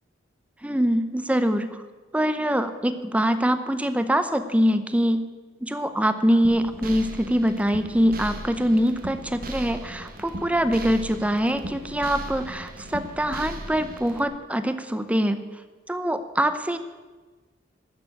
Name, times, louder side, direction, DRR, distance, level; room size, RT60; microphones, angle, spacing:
voice 1, 0.6-1.8 2.1-5.2 5.6-15.4 15.9-16.8, equal, 5° right, 10 dB, 0.7 m, -24 dB
sound 1, 6.4-14.2, right 1 dB, 50° right, 1.2 m, -37 dB
13.0 x 6.8 x 9.8 m, 1.3 s
head